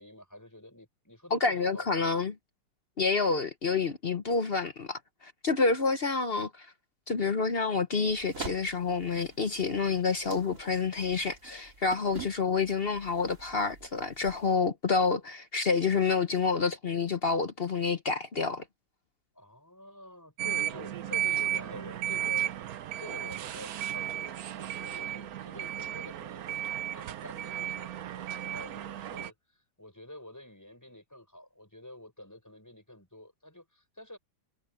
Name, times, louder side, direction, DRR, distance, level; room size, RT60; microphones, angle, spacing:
voice 1, 0.0-2.1 19.3-22.4 23.0-34.2, left 1 dB, 10° left, 7.0 m, -48 dB
voice 2, 1.3-2.3 3.0-6.7 7.1-18.6, left 4 dB, 45° left, 0.9 m, -28 dB
sound 1, 8.0-14.6, right 4 dB, 50° right, 3.2 m, -47 dB
sound 2, 20.4-29.3, right 12 dB, 65° right, 1.2 m, -34 dB
omnidirectional pair, 1.9 m